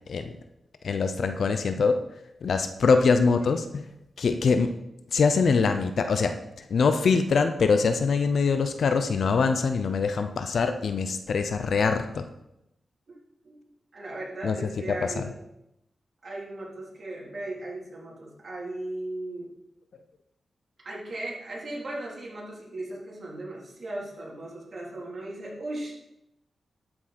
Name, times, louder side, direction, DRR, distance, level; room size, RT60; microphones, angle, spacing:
voice 1, 0.8-2.0 2.4-3.8 4.2-4.7 5.1-6.3 6.7-12.3 14.4-14.6 14.9-15.2, left 5 dB, 70° left, 7 dB, 0.7 m, -23 dB
voice 2, 13.9-15.3 16.2-19.5 20.8-26.0, right 1 dB, 50° right, -4 dB, 3.6 m, -37 dB
12.5 x 6.2 x 4.3 m, 0.86 s
cardioid pair, 80°, 0 cm